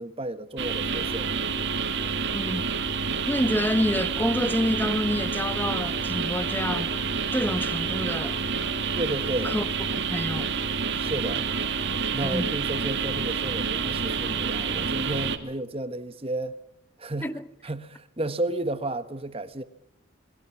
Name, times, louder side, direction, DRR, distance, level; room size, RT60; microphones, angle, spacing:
voice 1, 0.0-1.3 9.0-9.5 10.9-11.5 12.1-16.6 17.0-17.3 17.6-19.6, right 1 dB, 30° right, 1.3 m, -32 dB
sound 1, 0.6-15.4, right 5 dB, 55° right, 2.2 m, -28 dB
voice 2, 2.3-2.7 3.3-6.9 7.3-8.4 9.4-9.7 9.9-10.6 12.2-12.5 17.2-17.4, left 1 dB, 10° left, 0.8 m, -28 dB
28.5 x 21.5 x 6.1 m
head